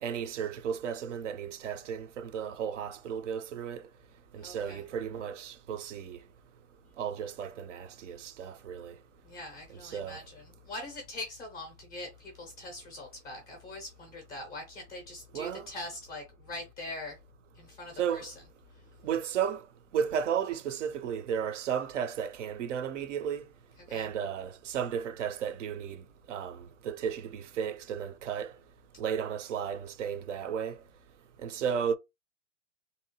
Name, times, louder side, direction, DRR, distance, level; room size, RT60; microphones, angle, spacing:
voice 1, 0.0-3.8 4.3-6.2 7.0-9.0 9.8-10.2 15.3-15.7 18.0-18.3 19.0-19.6 19.9-23.4 23.9-26.0 26.3-28.5 29.0-30.8 31.4-32.0, right 8 dB, 65° right, 0.7 m, -34 dB
voice 2, 4.4-4.8 9.2-17.2 17.5-18.3 18.7-18.8 23.9-24.1, left 2 dB, 10° left, 0.4 m, -43 dB
3.5 x 2.8 x 2.7 m
hypercardioid pair, 160°, 39 cm